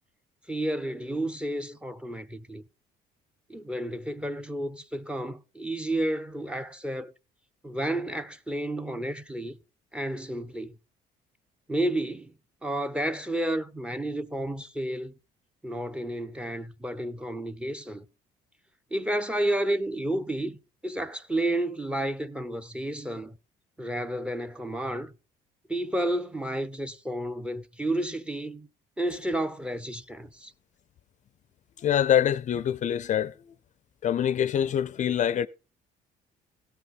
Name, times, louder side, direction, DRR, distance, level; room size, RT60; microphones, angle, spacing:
voice 1, 0.5-2.6 3.5-7.1 7.6-9.6 9.9-10.7 11.7-12.3 12.6-15.1 15.6-18.0 18.9-20.6 20.8-23.4 23.8-25.1 25.7-28.7 29.0-30.5, right 1 dB, 5° right, 0.7 m, -31 dB
voice 2, 31.8-33.3 34.0-35.5, left 10 dB, 45° left, 0.5 m, -25 dB
16.5 x 5.7 x 5.3 m
cardioid pair, 110°, 17 cm